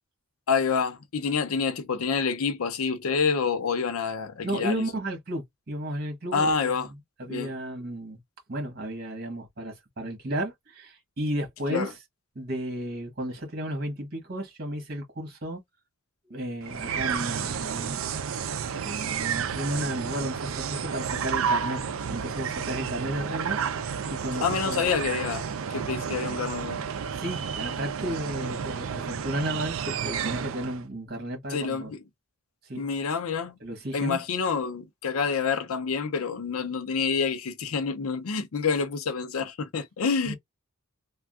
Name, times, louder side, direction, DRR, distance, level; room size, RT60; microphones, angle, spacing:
voice 1, 0.5-4.8 6.3-6.9 7.2-7.5 11.7-11.9 24.4-26.8 31.5-32.0 32.8-33.6 33.9-40.3, left 5 dB, 90° left, 0.6 m, -27 dB
voice 2, 4.4-6.8 7.2-8.2 8.5-11.9 12.3-15.6 16.3-18.2 18.8-21.8 22.1-23.6 24.1-24.9 27.1-31.9 32.7-32.8 33.6-34.2 40.3-40.4, right 1 dB, 50° right, 1.3 m, -33 dB
sound 1, 16.6-30.9, right 7 dB, 70° right, 0.4 m, -31 dB
3.3 x 2.3 x 2.3 m
head